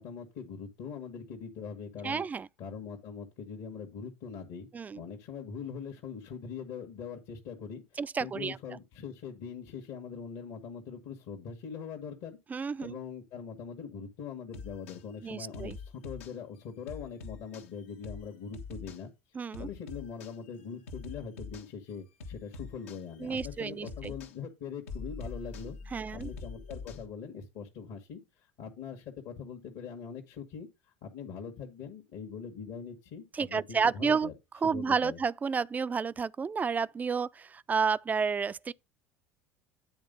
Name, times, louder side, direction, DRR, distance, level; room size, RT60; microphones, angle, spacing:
voice 1, 0.0-2.2 2.6-12.4 12.8-30.7 31.0-34.3 34.6-35.2, left 6 dB, 60° left, 1.5 m, -42 dB
voice 2, 2.0-2.5 4.7-5.0 8.0-8.6 12.5-13.0 15.2-15.8 19.4-19.7 23.2-24.1 25.9-26.3 33.3-34.3 34.6-38.7, right 5 dB, 20° right, 0.4 m, -31 dB
sound 1, 14.5-15.0 15.5-16.3 16.9-17.7 18.0-18.2 18.5-19.0 19.5-20.3 20.9-21.7 22.2-23.0 23.4-23.6 23.9-24.3 24.9-27.1, left 4 dB, 80° left, 1.2 m, -43 dB
9.6 x 3.6 x 5.3 m
hypercardioid pair, 70°, 7 cm